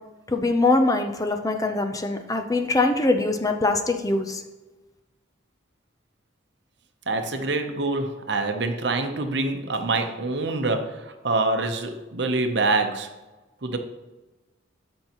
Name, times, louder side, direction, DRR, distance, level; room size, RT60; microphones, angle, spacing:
voice 1, 0.3-4.4, left 2 dB, 20° left, 6 dB, 0.5 m, -23 dB
voice 2, 7.1-13.1 13.6-13.8, right 3 dB, 60° right, 6 dB, 0.9 m, -25 dB
13.5 x 5.5 x 3.0 m, 1.1 s
head